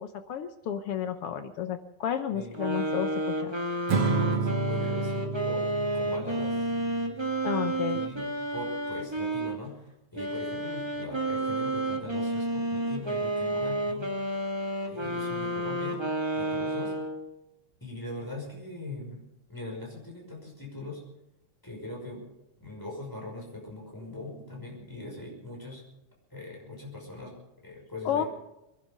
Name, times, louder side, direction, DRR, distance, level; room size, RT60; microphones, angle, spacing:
voice 1, 0.0-3.5 7.4-8.0 28.0-28.2, left 9 dB, 70° left, 9 dB, 1.4 m, -32 dB
voice 2, 2.3-2.8 4.0-6.7 7.9-9.8 10.1-14.3 14.9-16.0 16.3-16.9 17.8-19.2 19.5-21.0 21.6-22.3 22.6-25.8 26.3-27.4 27.6-28.3, left 2 dB, 5° left, -2 dB, 5.5 m, -41 dB
sound 1, 2.5-9.6 10.1-17.3, right 1 dB, 15° right, 1.0 m, -31 dB
Acoustic guitar / Strum, 3.9-7.2, right 4 dB, 55° right, 2.1 m, -30 dB
24.0 x 11.0 x 5.3 m, 0.90 s
omnidirectional pair, 3.5 m